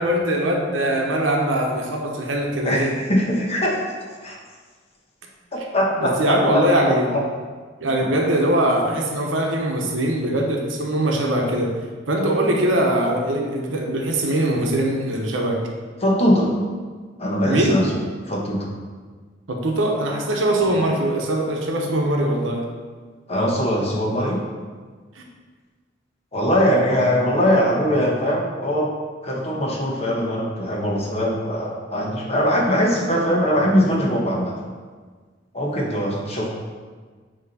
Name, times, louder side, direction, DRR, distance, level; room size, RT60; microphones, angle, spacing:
voice 1, 0.0-3.0 6.0-7.1 7.8-11.8 12.1-15.6 17.4-17.9 19.5-22.7, right 1 dB, 90° right, 1 dB, 0.9 m, -21 dB
voice 2, 2.6-3.8 4.2-4.4 5.5-6.9 8.0-8.1 16.0-16.5 17.2-17.8 18.3-18.7 23.3-24.4 26.3-28.9 29.2-34.5 35.5-36.5, equal, 35° left, -2 dB, 1.1 m, -21 dB
8.1 x 3.0 x 4.1 m, 1.5 s
head